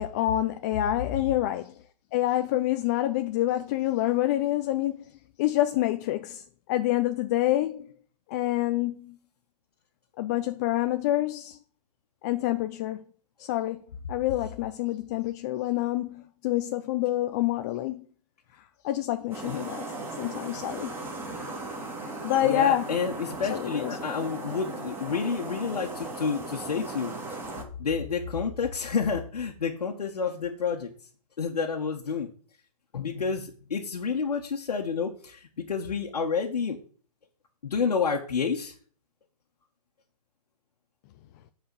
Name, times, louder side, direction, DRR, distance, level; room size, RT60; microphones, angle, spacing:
voice 1, 0.0-1.8 2.1-5.1 5.4-7.9 8.3-9.2 10.2-11.6 12.2-13.0 13.4-13.8 14.1-18.1 18.8-19.8 20.2-21.0 21.8-23.0 23.5-24.0, left 14 dB, 25° left, 0.5 m, -27 dB
sound 1, 19.3-27.6, right 2 dB, 10° right, 2.1 m, -37 dB
voice 2, 22.4-27.4 27.8-30.9 31.4-32.3 32.9-36.8 37.6-38.7, left 5 dB, 75° left, 1.5 m, -29 dB
8.2 x 4.9 x 6.7 m
hypercardioid pair, 140°, 20 cm